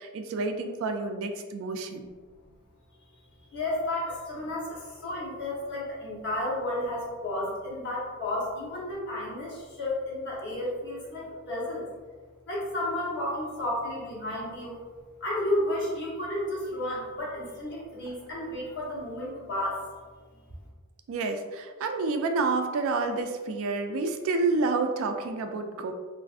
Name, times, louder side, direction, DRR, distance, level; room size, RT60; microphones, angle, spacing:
voice 1, 0.0-2.1 21.1-25.9, right 3 dB, 60° right, 6 dB, 0.3 m, -29 dB
voice 2, 3.5-11.9 12.5-14.8 15.2-19.8, left 1 dB, 50° left, -5 dB, 0.9 m, -32 dB
3.4 x 2.4 x 2.4 m, 1.4 s
head